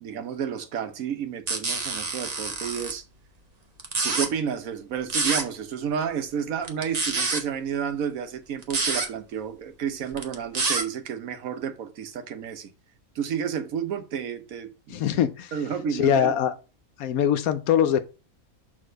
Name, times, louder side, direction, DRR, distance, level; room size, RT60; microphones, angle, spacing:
voice 1, 0.0-3.0 4.0-12.7 13.1-15.0 15.5-16.3, right 7 dB, 75° right, 1.2 m, -31 dB
sound 1, 1.5-2.9 3.8-4.3 5.1-5.4 6.6-7.4 8.6-9.1 10.1-10.8, right 4 dB, 35° right, 0.9 m, -27 dB
voice 2, 14.9-15.5 16.0-16.5 17.0-18.0, left 9 dB, 85° left, 1.2 m, -22 dB
6.5 x 3.6 x 5.1 m
omnidirectional pair, 1.5 m